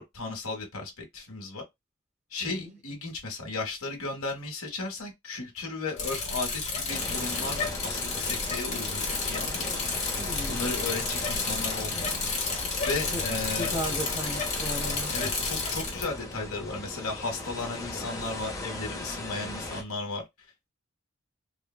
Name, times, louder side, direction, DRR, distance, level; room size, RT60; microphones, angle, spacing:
voice 1, 0.1-1.6 2.3-9.7 10.5-12.2 12.8-13.8 15.1-20.2, left 3 dB, 75° left, 1.0 m, -35 dB
voice 2, 2.4-2.8 10.2-10.8 13.1-13.2 13.6-15.2, equal, 30° right, 1.0 m, -36 dB
Bicycle, 6.0-16.0, left 4 dB, 30° left, 1.0 m, -31 dB
sound 1, 6.9-19.8, left 2 dB, 15° left, 0.6 m, -38 dB
3.2 x 2.2 x 2.2 m
head